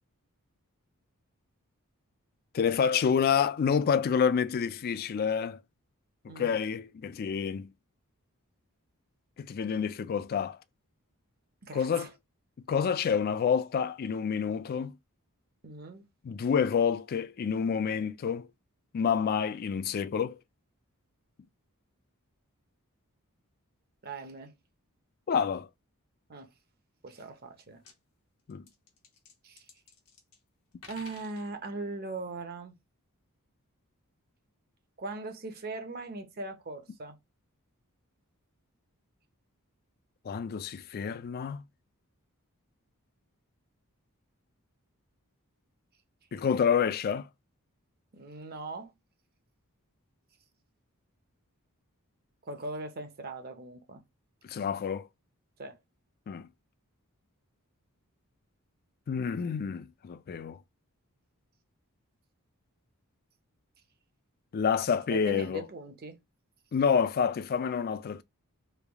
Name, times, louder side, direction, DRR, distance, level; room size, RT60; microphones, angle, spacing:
voice 1, 2.5-5.6 6.4-7.7 9.4-10.6 11.7-12.1 12.7-14.9 16.2-18.5 18.9-20.4 25.3-25.7 28.5-28.6 40.3-41.6 46.3-47.3 54.4-55.1 56.3-56.5 59.1-60.6 64.5-65.7 66.7-68.2, left 6 dB, 40° left, 0.3 m, -28 dB
voice 2, 11.6-12.1 15.6-16.0 24.0-24.5 26.3-26.5 27.0-27.8 29.4-29.6 30.9-32.7 35.0-37.2 48.1-48.9 52.5-54.0 55.6-55.8 65.1-66.2, right 3 dB, 45° right, 0.7 m, -40 dB
sound 1, 27.4-27.5 27.7-28.0 28.5-30.4 30.7-31.5, left 5 dB, 90° left, 1.1 m, -53 dB
3.3 x 2.3 x 3.4 m
head